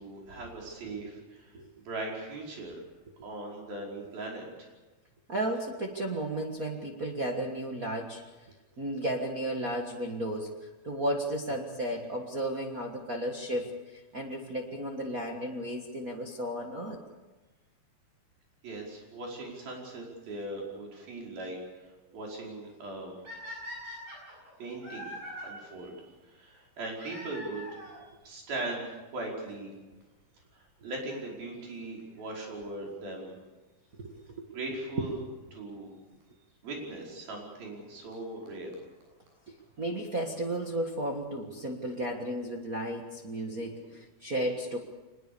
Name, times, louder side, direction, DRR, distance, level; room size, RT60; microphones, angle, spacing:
voice 1, 0.0-2.8 3.2-4.7 18.6-21.9 22.1-23.2 24.6-25.1 25.4-27.7 28.3-29.7 30.5-33.3 34.5-35.2 35.5-35.9 36.6-38.7, right 2 dB, 70° right, -1 dB, 6.9 m, -39 dB
voice 2, 5.3-8.2 8.8-17.0 33.9-34.4 35.0-35.1 39.5-44.8, right 1 dB, 50° right, 0 dB, 1.0 m, -34 dB
sound 1, 23.2-25.5 26.9-28.0 28.9-29.0 29.7-29.8 30.0-30.1 32.0-32.2 35.1-35.2 36.2-36.3 37.7-37.8 38.1-38.2 38.5-38.6 38.7-38.8 39.0-39.1 39.3-39.4 39.6-39.7, left 1 dB, 90° right, 9.6 m, -43 dB
24.5 x 20.5 x 6.9 m, 1.2 s
omnidirectional pair, 4.3 m